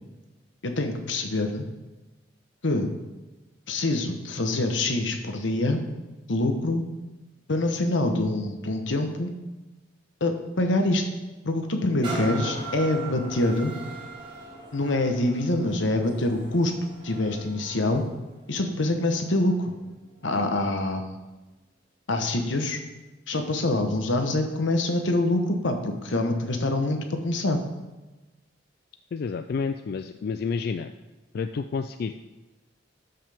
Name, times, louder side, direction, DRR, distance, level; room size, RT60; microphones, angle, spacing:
voice 1, 0.6-1.7 2.6-2.9 3.7-5.8 6.3-6.8 7.5-9.3 10.2-11.1 11.4-13.7 14.7-16.7 17.0-18.0 18.5-19.7 20.2-21.2 22.1-22.8 23.3-27.6, left 2 dB, 85° left, 5 dB, 1.1 m, -25 dB
sound 1, 12.0-19.6 20.2-20.3, right 3 dB, 25° right, 2.2 m, -40 dB
voice 2, 29.1-30.9 31.3-32.1, left 5 dB, 55° left, 9 dB, 0.3 m, -29 dB
12.5 x 5.8 x 3.5 m, 1.1 s
head